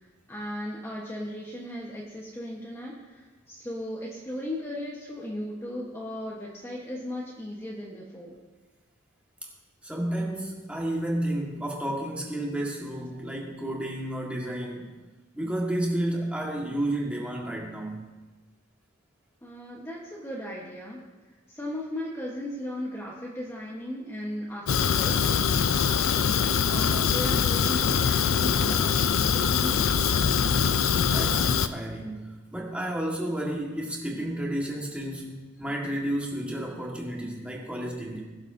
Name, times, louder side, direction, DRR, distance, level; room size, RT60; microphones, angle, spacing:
voice 1, 0.3-8.4 19.4-21.0 21.5-25.2 25.7-30.1, left 1 dB, 15° left, -4 dB, 1.2 m, -37 dB
voice 2, 9.8-14.9 15.3-18.0 31.0-38.2, right 1 dB, 5° right, -2 dB, 1.7 m, -31 dB
Fire, 24.7-31.7, left 7 dB, 85° left, 0.5 m, -23 dB
21.5 x 7.3 x 2.7 m, 1.2 s
head